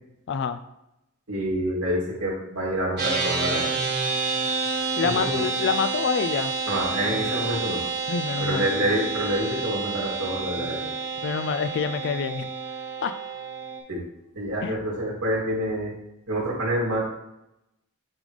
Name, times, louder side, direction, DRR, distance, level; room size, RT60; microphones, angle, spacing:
voice 1, 0.3-0.6 5.0-6.6 8.1-8.7 11.2-12.5 13.0-13.1 14.6-14.8, left 6 dB, 55° left, 11 dB, 0.3 m, -27 dB
voice 2, 1.3-3.8 5.0-5.4 6.7-7.8 8.4-10.9 13.9-14.0 14.3-15.9 16.3-17.1, right 1 dB, 80° right, -5 dB, 2.5 m, -27 dB
sound 1, 3.0-13.8, right 4 dB, 50° right, 1.5 m, -29 dB
8.5 x 3.9 x 3.2 m, 0.87 s
head